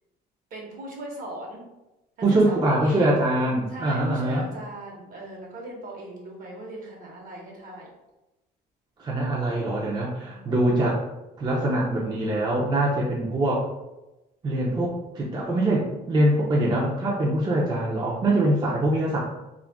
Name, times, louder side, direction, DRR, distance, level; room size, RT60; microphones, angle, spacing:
voice 1, 0.5-1.6 2.2-3.1 3.7-7.9 10.1-10.7, right 1 dB, 55° right, -1 dB, 1.0 m, -39 dB
voice 2, 2.2-4.4 9.0-11.0 11.4-13.7 14.4-19.2, right 1 dB, 25° right, -4 dB, 0.5 m, -23 dB
2.4 x 2.2 x 3.4 m, 0.98 s
cardioid pair, 110°, 17 cm